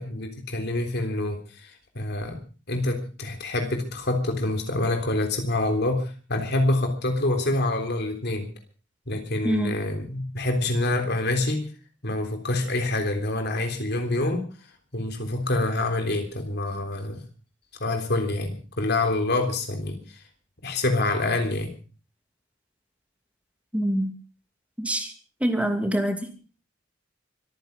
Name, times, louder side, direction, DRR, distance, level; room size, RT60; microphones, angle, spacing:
voice 1, 0.0-2.4 2.7-8.5 9.1-11.7 12.0-14.5 14.9-17.2 17.8-20.2 20.6-21.7, left 2 dB, 60° left, 4 dB, 3.6 m, -26 dB
voice 2, 23.7-24.1 24.8-25.1 25.4-26.3, right 1 dB, 5° right, 6 dB, 2.7 m, -25 dB
25.0 x 9.9 x 5.4 m, 0.38 s
head